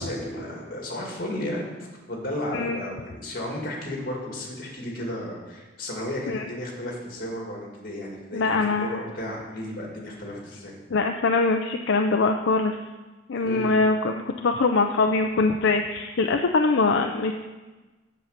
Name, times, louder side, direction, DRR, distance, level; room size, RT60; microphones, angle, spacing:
voice 1, 0.0-10.7 13.4-13.7, left 1 dB, 50° left, -1 dB, 2.3 m, -33 dB
voice 2, 8.3-9.0 10.9-12.8 13.3-17.3, left 3 dB, 70° left, 4 dB, 0.5 m, -23 dB
7.6 x 6.7 x 6.6 m, 1.2 s
head